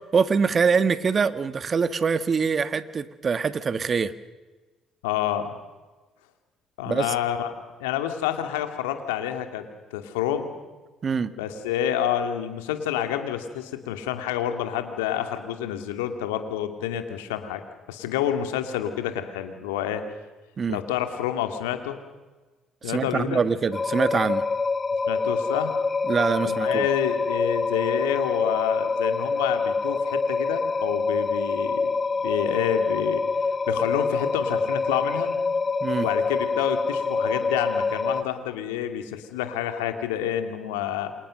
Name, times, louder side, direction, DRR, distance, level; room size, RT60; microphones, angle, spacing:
voice 1, 0.1-4.1 6.9-7.1 11.0-11.3 20.6-20.8 22.8-24.4 26.1-26.9 35.8-36.1, right 5 dB, 45° right, 12 dB, 1.7 m, -24 dB
voice 2, 5.0-5.5 6.8-7.5 7.8-10.5 11.4-17.6 17.9-20.0 20.7-22.0 22.8-23.4 25.1-25.7 26.4-35.3 36.0-41.1, left 10 dB, 85° left, 7 dB, 2.6 m, -28 dB
sound 1, 23.7-38.2, left 4 dB, 30° left, 1.5 m, -26 dB
28.5 x 26.5 x 6.6 m, 1.2 s
hypercardioid pair, 55°, 0 cm